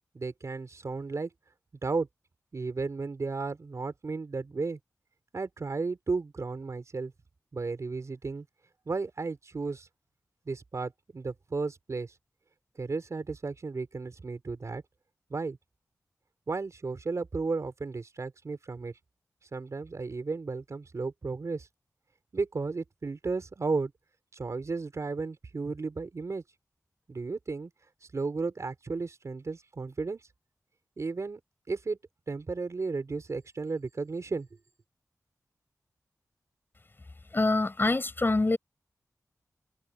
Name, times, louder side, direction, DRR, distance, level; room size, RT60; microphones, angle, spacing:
voice 1, 0.1-1.3 1.8-2.1 2.5-4.8 5.3-7.1 7.5-8.5 8.9-9.9 10.5-12.1 12.8-14.8 15.3-15.6 16.5-18.9 19.5-21.7 22.3-23.9 24.3-26.4 27.1-27.7 28.1-30.2 31.0-31.4 31.7-32.0 32.3-34.5, right 4 dB, 55° right, 4.7 m, -34 dB
voice 2, 37.3-38.6, left 2 dB, 35° left, 7.7 m, -25 dB
wide cardioid pair, 80°, 6 cm